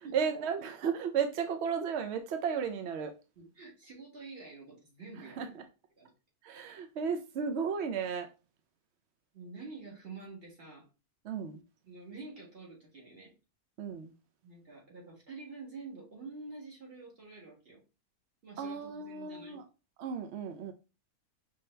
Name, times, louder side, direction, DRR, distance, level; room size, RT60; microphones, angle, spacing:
voice 1, 0.0-3.1 5.4-5.5 6.4-8.3 11.2-11.6 13.8-14.1 18.6-19.6 20.0-20.7, right 6 dB, 65° right, 0.6 m, -34 dB
voice 2, 3.4-5.4 6.0-6.1 9.3-10.9 11.8-13.3 14.4-17.8 18.4-19.6, right 3 dB, 40° right, 2.0 m, -48 dB
5.4 x 2.7 x 3.2 m
omnidirectional pair, 1.5 m